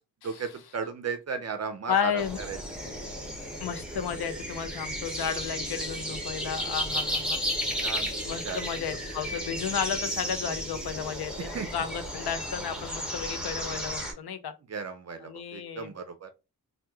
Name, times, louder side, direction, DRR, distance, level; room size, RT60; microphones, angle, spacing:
voice 1, 0.2-2.6 7.8-8.1 8.4-8.7 11.5-11.7 14.7-16.3, right 5 dB, 45° right, 0.4 m, -35 dB
voice 2, 1.9-2.4 3.6-7.4 8.2-14.5 15.2-15.9, left 7 dB, 75° left, 0.7 m, -33 dB
sound 1, 2.2-14.1, equal, ahead, 0.6 m, -34 dB
3.0 x 2.2 x 3.4 m
wide cardioid pair, 175°, 39 cm